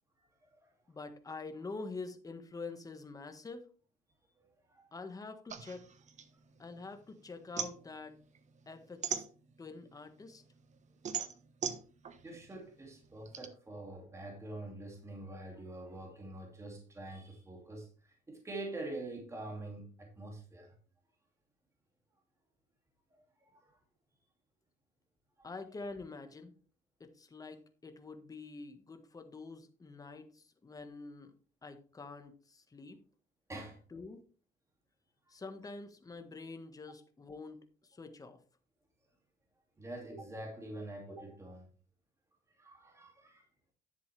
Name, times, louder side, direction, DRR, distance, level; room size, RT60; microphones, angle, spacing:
voice 1, 0.9-3.7 4.9-5.8 6.6-8.2 8.7-9.2 9.6-10.4 25.4-26.5 27.0-31.3 31.6-33.0 33.9-34.2 35.3-37.6 37.9-38.4, left 3 dB, 20° left, 1.5 m, -46 dB
voice 2, 4.4-4.9 6.8-7.0 12.2-20.7 23.1-23.8 25.4-25.5 33.5-33.8 39.8-41.7 42.6-43.4, right 2 dB, 15° right, 2.6 m, -46 dB
sound 1, 5.5-7.0 7.3-9.8 10.3-13.5, right 7 dB, 45° right, 1.2 m, -40 dB
10.5 x 7.6 x 3.4 m
cardioid pair, 110°, 17 cm